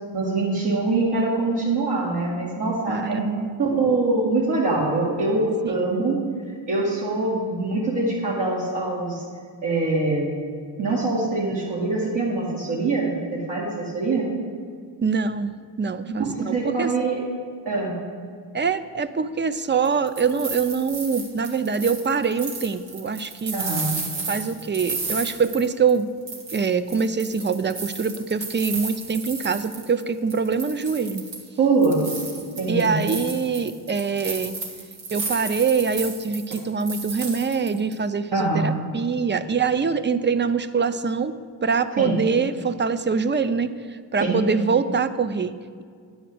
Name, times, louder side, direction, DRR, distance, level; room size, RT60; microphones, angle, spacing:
voice 1, 0.1-3.2 3.6-6.2 6.7-9.2 9.6-10.3 10.8-14.3 16.1-17.2 17.7-17.9 23.5-23.9 31.6-32.0 32.6-32.9 38.3-38.7 42.0-42.2 44.2-44.4, right 3 dB, 60° right, -7 dB, 2.2 m, -23 dB
voice 2, 2.9-3.5 15.0-17.1 18.5-23.6 24.3-26.1 26.5-31.2 32.7-34.6 35.1-43.7 44.1-45.8, right 5 dB, 25° right, 13 dB, 0.5 m, -24 dB
sound 1, 19.8-26.0 26.3-30.0 30.3-31.5 31.8-37.9, right 3 dB, 80° right, 1.8 m, -33 dB
9.9 x 5.0 x 7.9 m, 2.1 s
supercardioid pair, 65°, 44 cm